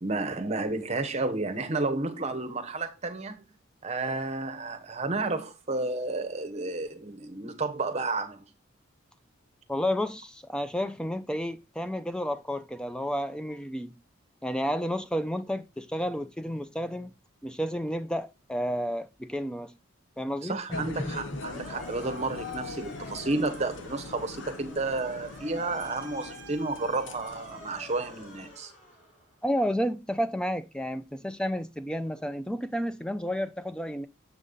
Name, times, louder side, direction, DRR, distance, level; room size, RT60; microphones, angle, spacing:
voice 1, 0.0-3.4 3.8-8.4 20.4-28.7, right 3 dB, 30° right, 0.8 m, -31 dB
voice 2, 9.7-14.0 14.4-17.1 17.4-19.7 20.2-21.2 29.4-34.1, equal, 5° left, 0.3 m, -31 dB
sound 1, 20.7-28.5, left 3 dB, 55° left, 0.6 m, -42 dB
Motor vehicle (road) / Siren, 20.8-29.4, equal, 35° left, 3.4 m, -49 dB
7.3 x 5.4 x 3.8 m
head